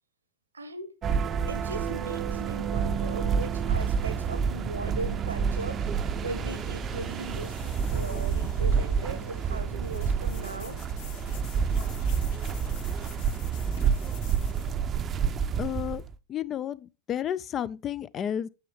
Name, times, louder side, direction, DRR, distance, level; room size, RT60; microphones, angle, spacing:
voice 1, 0.5-1.0 1.5-5.8 6.2-10.8, right 2 dB, 80° right, 1.0 m, -38 dB
sound 1, 1.0-16.1, right 6 dB, 25° right, 0.6 m, -29 dB
sound 2, 4.6-14.0, right 3 dB, 80° left, 2.1 m, -44 dB
sound 3, 5.4-14.8, left 7 dB, 50° left, 1.6 m, -50 dB
voice 2, 15.6-16.0 16.3-18.5, left 10 dB, 30° left, 0.4 m, -31 dB
9.2 x 6.9 x 3.2 m
figure-of-eight pair, 90°, 0 cm